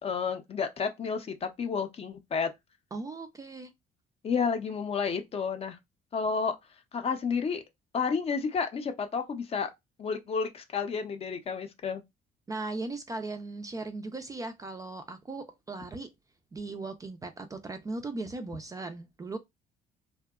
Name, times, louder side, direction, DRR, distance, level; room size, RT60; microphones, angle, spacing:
voice 1, 0.0-2.5 4.2-5.8 6.1-6.6 6.9-7.6 7.9-9.7 10.0-12.0, left 5 dB, 35° left, 0.5 m, -31 dB
voice 2, 2.9-3.7 12.5-16.1 16.5-19.4, right 3 dB, 20° right, 0.3 m, -38 dB
2.6 x 2.2 x 2.2 m
cardioid pair, 110°, 17 cm